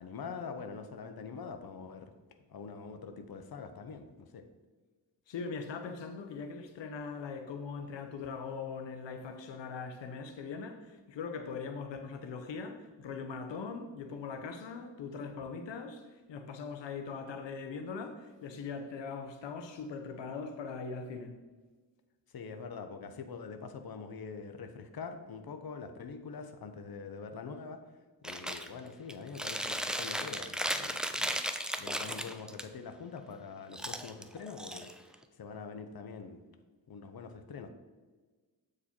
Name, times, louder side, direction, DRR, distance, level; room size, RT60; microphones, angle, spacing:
voice 1, 0.0-2.1 2.5-4.4 22.3-27.8 28.2-31.4 31.8-36.4 36.9-37.7, left 5 dB, 60° left, 0.9 m, -44 dB
voice 2, 5.3-10.8 11.1-16.0 16.3-21.4, left 5 dB, 85° left, 0.8 m, -41 dB
Chewing mastication, 28.2-28.7 29.1-32.6 33.7-35.2, equal, ahead, 0.6 m, -35 dB
8.2 x 5.0 x 4.4 m
cardioid pair, 70°, 42 cm